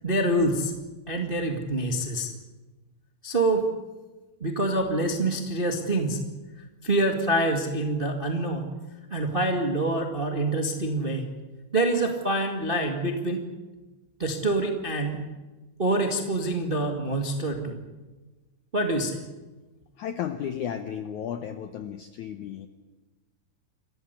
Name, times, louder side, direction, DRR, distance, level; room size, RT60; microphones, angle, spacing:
voice 1, 0.0-0.7 1.1-2.3 3.2-3.7 4.4-6.2 6.8-8.7 9.1-11.3 11.7-13.4 14.2-15.2 15.8-17.8 18.7-19.2, right 1 dB, 30° right, 4 dB, 0.9 m, -26 dB
voice 2, 20.0-22.7, left 9 dB, 75° left, 9 dB, 1.8 m, -33 dB
27.0 x 15.0 x 9.8 m, 1.2 s
omnidirectional pair, 4.7 m